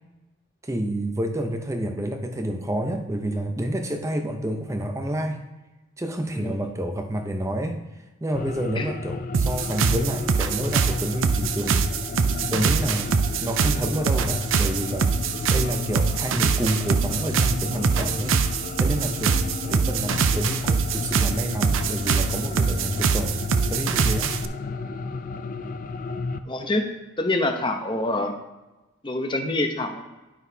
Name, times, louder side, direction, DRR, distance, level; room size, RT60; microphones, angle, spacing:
voice 1, 0.6-5.4 6.0-11.9 12.5-15.2 15.5-18.4 18.8-23.4 23.7-24.4, right 1 dB, 15° right, 6 dB, 0.6 m, -29 dB
sound 1, 8.3-26.4, left 4 dB, 40° left, 0.4 m, -33 dB
sound 2, 9.3-24.5, right 6 dB, 65° right, 0.4 m, -24 dB
voice 2, 26.5-26.8 27.2-28.3 29.0-30.0, left 2 dB, 25° left, 4 dB, 0.7 m, -26 dB
11.0 x 5.8 x 2.8 m, 1.1 s
head